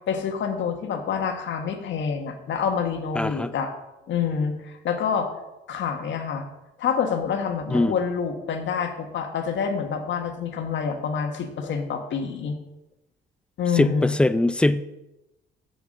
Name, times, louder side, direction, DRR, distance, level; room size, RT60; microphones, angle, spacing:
voice 1, 0.1-3.7 4.1-5.3 5.7-6.4 6.8-12.5 13.6-14.2, left 6 dB, 70° left, 5 dB, 1.5 m, -27 dB
voice 2, 3.2-3.5 7.7-8.0 13.7-15.0, left 2 dB, 5° left, 13 dB, 0.5 m, -22 dB
7.6 x 5.9 x 7.2 m, 0.95 s
cardioid pair, 90°, 20 cm